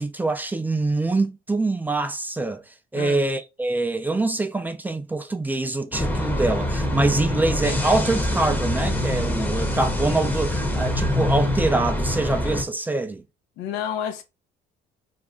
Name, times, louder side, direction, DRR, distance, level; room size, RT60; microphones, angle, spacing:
voice 1, 0.0-2.6 2.9-13.2, right 2 dB, 10° right, 0.3 m, -24 dB
sound 1, 5.9-12.6, left 1 dB, 10° left, 0.7 m, -24 dB
voice 2, 13.6-14.2, left 9 dB, 90° left, 0.6 m, -29 dB
2.5 x 2.2 x 3.6 m
cardioid pair, 110°, 17 cm